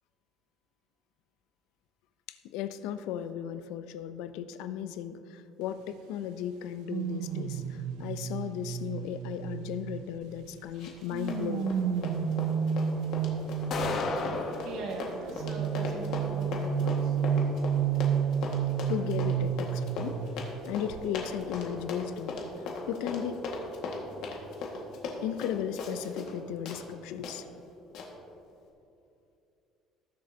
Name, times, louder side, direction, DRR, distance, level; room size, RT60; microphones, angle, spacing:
voice 1, 2.3-11.8 18.9-20.2 20.7-22.5 22.9-23.4 23.9-24.0 25.2-27.4, left 9 dB, 90° left, 11 dB, 0.6 m, -36 dB
sound 1, 6.9-10.5 11.1-14.4 15.4-20.6 20.9-21.2, right 7 dB, 90° right, 0.5 m, -31 dB
Run, 10.8-11.0 11.3-26.4 26.7-26.8 27.2-27.3 27.9-28.1, left 3 dB, 65° left, 1.8 m, -38 dB
sound 2, 13.7-14.7, left 3 dB, 45° left, 1.0 m, -31 dB
voice 2, 14.2-17.2, right 3 dB, 65° right, 1 dB, 1.8 m, -41 dB
20.0 x 7.6 x 2.9 m, 2.7 s
cardioid pair, 155°, 0 cm